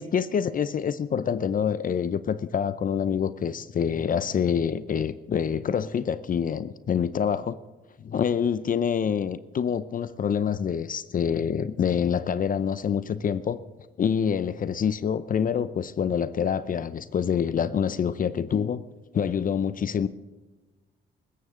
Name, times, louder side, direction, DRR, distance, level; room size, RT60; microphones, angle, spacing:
voice 1, 0.0-7.6 8.0-13.6 14.0-18.8 19.1-20.1, left 7 dB, 45° left, 14 dB, 0.6 m, -26 dB
20.0 x 16.0 x 3.8 m, 1.2 s
cardioid pair, 90°, 20 cm